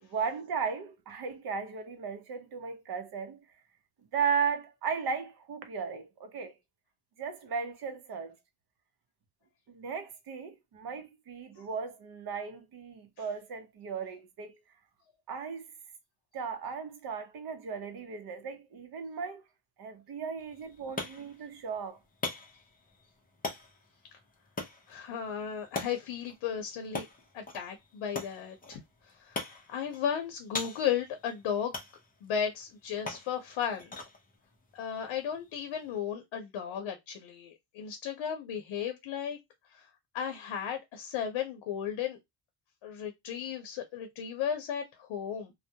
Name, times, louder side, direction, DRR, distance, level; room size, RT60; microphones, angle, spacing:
voice 1, 0.0-3.5 4.1-6.6 7.2-8.4 9.7-14.6 15.3-15.7 16.3-19.4 19.8-22.0, right 6 dB, 55° right, 0.7 m, -36 dB
sound 1, 20.4-36.0, left 3 dB, 20° left, 0.5 m, -43 dB
voice 2, 24.9-27.1 27.3-31.7 32.2-33.9 34.7-39.4 39.7-39.9 40.1-42.2 42.8-45.5, left 8 dB, 80° left, 0.7 m, -35 dB
2.2 x 2.1 x 2.7 m
cardioid pair, 150°, 46 cm